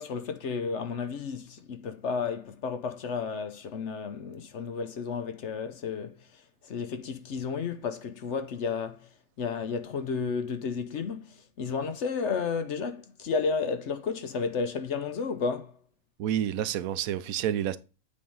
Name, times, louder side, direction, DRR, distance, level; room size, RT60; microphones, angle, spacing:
voice 1, 0.0-9.1 9.4-15.8, left 5 dB, 60° left, 0.9 m, -32 dB
voice 2, 16.2-17.8, right 10 dB, 75° right, 1.0 m, -29 dB
8.6 x 3.5 x 5.4 m
omnidirectional pair, 1.5 m